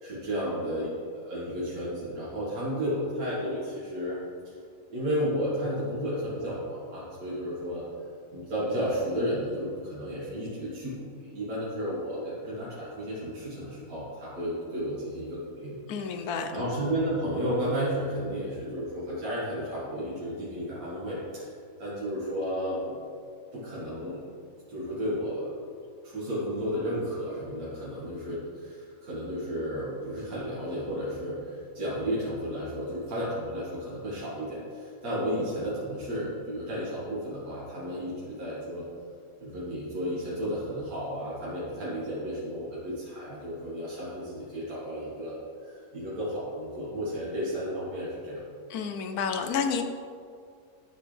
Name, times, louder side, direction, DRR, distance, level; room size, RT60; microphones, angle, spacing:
voice 1, 0.0-4.2 4.5-4.6 4.9-7.9 8.3-21.5 21.8-23.0 23.5-24.2 24.7-25.7 26.0-38.9 39.4-48.4, equal, 75° right, -9 dB, 2.3 m, -33 dB
voice 2, 15.9-16.7 48.7-49.8, left 6 dB, 90° left, 7 dB, 1.2 m, -30 dB
12.0 x 6.2 x 3.3 m, 2.3 s
omnidirectional pair, 1.6 m